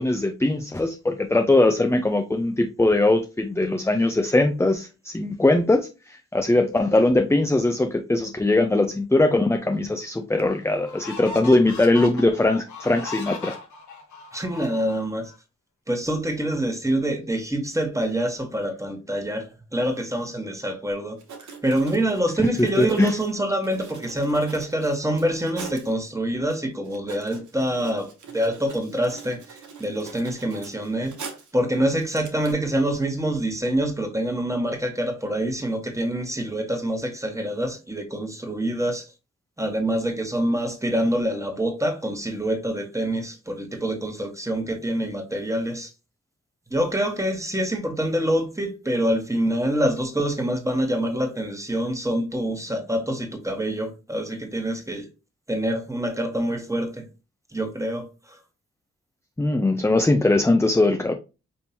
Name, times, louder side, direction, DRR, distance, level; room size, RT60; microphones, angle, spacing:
voice 1, 0.0-13.6 22.4-23.1 59.4-61.1, left 2 dB, 10° left, 0.5 m, -21 dB
sound 1, 9.7-9.8 10.4-15.4, left 2 dB, 85° left, 1.1 m, -38 dB
voice 2, 14.3-15.3 15.9-19.5 19.7-31.2 31.5-39.0 39.6-45.9 46.7-55.1 55.5-57.1 57.5-58.1, right 1 dB, 10° right, 1.4 m, -26 dB
Writing, 20.9-21.0 21.2-25.9 26.5-26.6 26.8-31.6 32.0-32.5, right 5 dB, 80° right, 1.1 m, -43 dB
5.3 x 2.9 x 2.8 m
cardioid pair, 60°, 29 cm